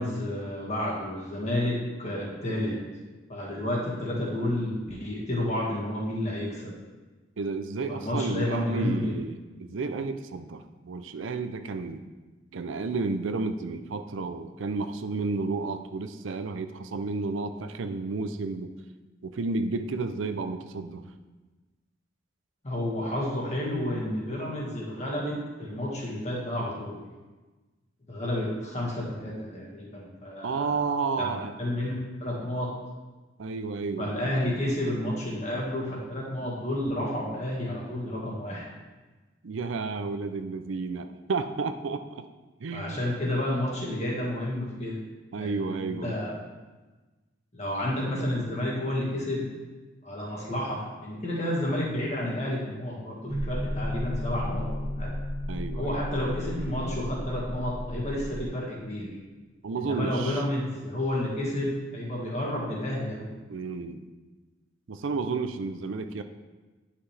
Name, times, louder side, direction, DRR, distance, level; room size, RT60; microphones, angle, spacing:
voice 1, 0.0-2.8 3.3-6.7 7.9-9.2 22.6-27.0 28.1-30.7 31.2-31.9 32.2-32.7 34.0-38.7 42.7-45.0 45.3-46.4 47.5-49.5 50.0-55.1 55.7-59.1 59.8-63.3, left 1 dB, 35° left, -3 dB, 1.8 m, -31 dB
voice 2, 7.4-12.0 12.5-18.7 19.2-21.0 30.4-31.5 33.4-34.1 39.4-42.2 42.6-43.0 45.3-46.2 55.5-56.0 59.6-60.4 63.5-64.0 64.9-66.2, right 4 dB, 90° right, 9 dB, 0.5 m, -31 dB
sound 1, 53.3-58.4, left 1 dB, 5° left, 1.2 m, -33 dB
9.6 x 5.9 x 3.4 m, 1.2 s
head